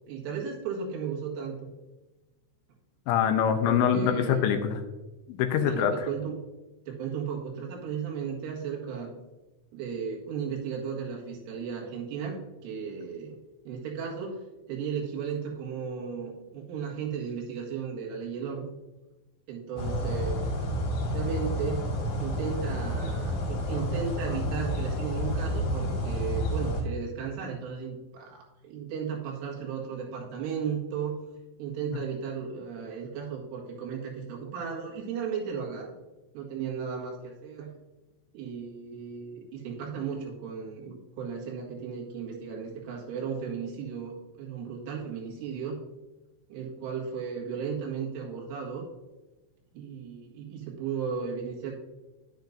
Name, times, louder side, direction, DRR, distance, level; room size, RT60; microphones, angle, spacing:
voice 1, 0.1-1.7 3.7-4.4 5.6-6.4 6.9-9.1 9.7-13.4 13.7-14.4 14.7-18.7 19.5-20.5 21.0-21.8 22.2-31.2 31.6-35.9 36.3-37.7 38.3-45.8 46.5-48.9 49.7-51.7, right 6 dB, 85° right, -2 dB, 4.3 m, -35 dB
voice 2, 3.1-4.8 5.3-6.0, left 8 dB, 80° left, 5 dB, 2.9 m, -24 dB
sound 1, 19.8-26.8, equal, 65° left, 4.0 m, -30 dB
10.5 x 10.0 x 2.6 m, 1.1 s
omnidirectional pair, 5.5 m